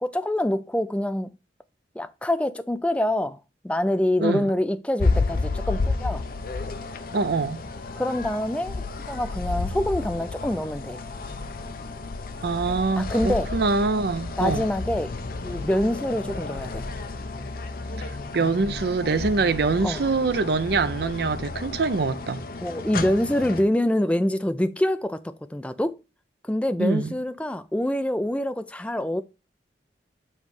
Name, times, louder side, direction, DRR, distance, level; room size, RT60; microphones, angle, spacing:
voice 1, 0.0-1.3 2.0-3.4 3.6-6.2 8.0-11.0 13.0-13.5 14.4-15.2 15.4-16.8 19.8-20.0 22.6-26.0 26.4-29.2, left 1 dB, 5° left, 0.4 m, -25 dB
sound 1, 5.0-23.6, left 3 dB, 50° left, 0.7 m, -31 dB
voice 2, 7.1-7.6 12.4-14.7 18.3-22.4 26.8-27.1, right 4 dB, 60° right, 0.5 m, -24 dB
7.2 x 3.1 x 5.3 m
head